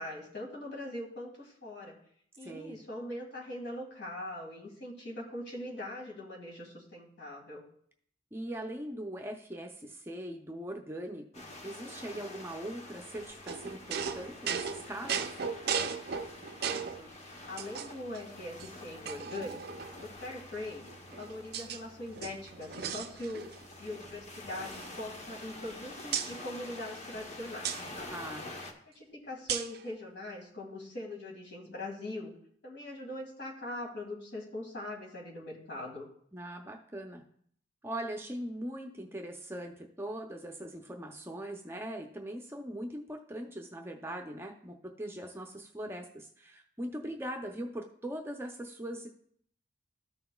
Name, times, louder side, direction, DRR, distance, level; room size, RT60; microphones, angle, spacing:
voice 1, 0.0-2.0 2.4-7.6 16.6-17.1 17.5-20.9 21.2-23.5 23.8-27.7 27.9-28.1 28.9-32.3 32.6-36.1, left 1 dB, 60° left, 0 dB, 2.2 m, -41 dB
voice 2, 2.4-2.8 8.3-15.4 28.1-28.5 36.3-37.2 37.8-49.1, right 1 dB, 15° right, 2 dB, 0.6 m, -41 dB
sound 1, 11.3-28.7, left 2 dB, 35° left, 1.0 m, -47 dB
sound 2, 13.5-17.0 17.6-18.2 18.6-18.7 19.1-20.1 20.9-21.8 22.1-23.7 23.9-24.1 24.5-25.7 26.1-26.3 27.6-27.8 29.5-29.8, right 7 dB, 55° right, 0.5 m, -36 dB
13.5 x 5.7 x 2.3 m, 0.64 s
head